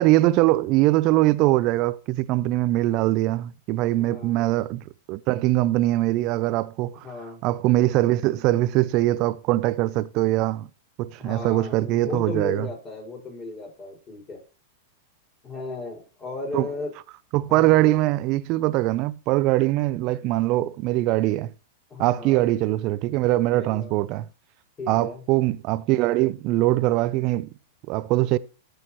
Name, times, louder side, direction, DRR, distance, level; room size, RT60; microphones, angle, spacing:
voice 1, 0.0-7.1 7.4-10.7 11.0-12.7 16.5-16.7 17.3-21.5 22.0-24.3 24.9-27.5 27.9-28.4, right 17 dB, 45° right, 0.6 m, -22 dB
voice 2, 4.0-4.5 7.0-7.4 11.2-14.4 15.4-16.9 17.4-18.1 21.9-22.5 23.6-23.9 24.8-25.2, left 3 dB, 25° left, 5.6 m, -35 dB
14.0 x 6.5 x 3.1 m
hypercardioid pair, 115°, 0 cm